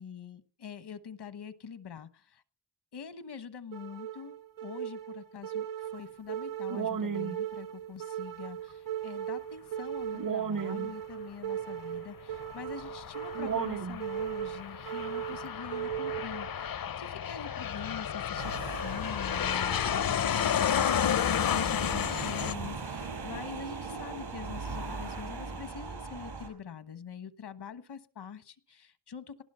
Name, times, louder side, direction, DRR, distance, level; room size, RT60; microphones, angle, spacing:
voice 1, 0.0-2.4 2.9-29.4, left 7 dB, 80° left, 13 dB, 1.3 m, -44 dB
sound 1, 3.7-16.7, right 9 dB, 55° right, 0.8 m, -36 dB
Aircraft, 12.3-22.5, left 8 dB, 60° left, 0.7 m, -32 dB
sound 2, 18.4-26.5, right 4 dB, 80° right, 5.0 m, -40 dB
18.5 x 12.5 x 5.6 m, 0.40 s
wide cardioid pair, 175°, 40 cm